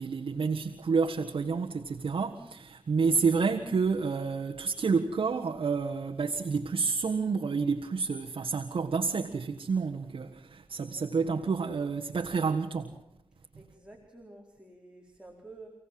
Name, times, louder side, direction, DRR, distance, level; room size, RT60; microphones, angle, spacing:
voice 1, 0.0-12.9, right 5 dB, 80° right, 1.6 m, -29 dB
voice 2, 13.3-15.7, right 2 dB, 10° right, 4.5 m, -51 dB
29.0 x 17.5 x 7.8 m
wide cardioid pair, 70°, 9 cm